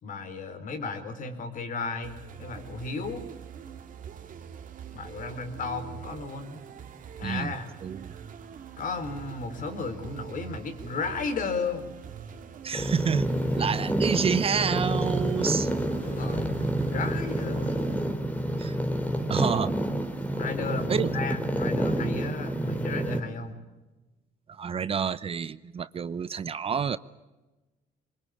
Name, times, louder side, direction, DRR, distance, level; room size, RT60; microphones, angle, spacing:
voice 1, 0.0-3.3 4.9-6.6 7.2-7.7 8.8-11.9 16.0-16.6 16.9-17.9 20.4-23.6, left 4 dB, 50° left, 3.9 m, -34 dB
sound 1, 2.0-18.0, right 8 dB, 50° right, 2.2 m, -44 dB
voice 2, 7.2-7.5 7.8-8.1 12.6-13.3 13.6-15.7 18.6-18.8 19.3-19.7 20.9-21.1 24.5-27.0, right 6 dB, 35° right, 0.7 m, -28 dB
sound 2, 12.7-23.2, right 1 dB, 10° left, 3.2 m, -28 dB
24.0 x 21.5 x 8.6 m
cardioid pair, 110°, 17 cm